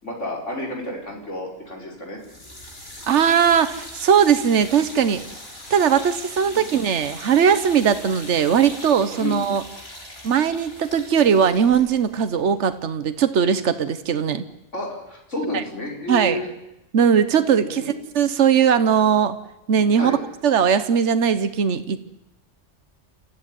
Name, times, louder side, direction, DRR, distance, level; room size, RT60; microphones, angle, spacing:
voice 1, 0.0-2.2 6.4-6.7 9.2-9.4 14.7-16.5 17.5-18.0 20.0-20.2, left 1 dB, 85° left, 0 dB, 5.5 m, -31 dB
sound 1, 2.2-13.3, left 1 dB, 55° left, 5.1 m, -40 dB
voice 2, 3.1-5.2 5.7-9.6 10.2-14.4 16.1-16.4 16.9-19.4 19.7-20.2 20.4-22.0, right 7 dB, 75° right, 11 dB, 1.3 m, -19 dB
29.5 x 14.0 x 9.9 m, 0.91 s
omnidirectional pair, 1.2 m